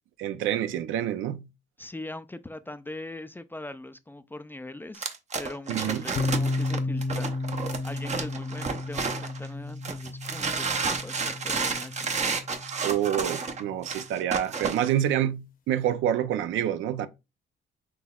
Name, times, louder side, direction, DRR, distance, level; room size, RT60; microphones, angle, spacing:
voice 1, 0.2-1.4 5.7-6.0 12.8-17.1, right 11 dB, 80° right, 0.4 m, -27 dB
voice 2, 1.8-5.1 5.4-7.4 7.8-12.1, left 2 dB, 10° left, 0.3 m, -41 dB
sound 1, 4.9-9.5 9.8-14.9, right 4 dB, 35° right, 0.7 m, -31 dB
sound 2, 6.1-13.8, left 2 dB, 45° left, 0.8 m, -33 dB
5.9 x 3.0 x 2.3 m
cardioid pair, 90°, 20 cm